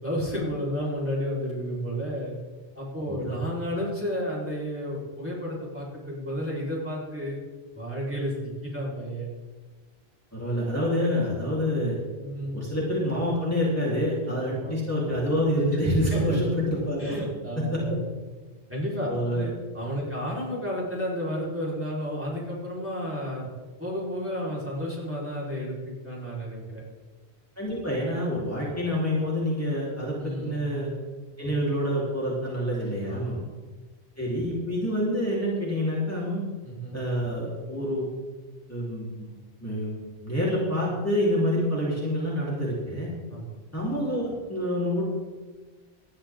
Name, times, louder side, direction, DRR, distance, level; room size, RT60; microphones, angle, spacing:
voice 1, 0.0-2.3 2.7-7.4 7.7-9.3 12.2-12.6 14.3-14.8 15.7-16.4 17.0-17.9 18.7-19.1 19.3-23.5 23.8-26.8 30.2-30.6 33.1-33.6 36.6-36.9 43.3-43.5, equal, 10° right, -6 dB, 4.7 m, -32 dB
voice 2, 10.3-12.0 12.5-17.2 17.6-18.0 19.1-19.5 20.0-20.1 27.6-30.9 31.4-33.4 34.2-36.4 36.9-38.1 38.7-39.3 39.6-43.1 43.7-45.0, equal, 15° left, -6 dB, 4.0 m, -27 dB
19.5 x 13.0 x 3.9 m, 1.3 s
omnidirectional pair, 1.1 m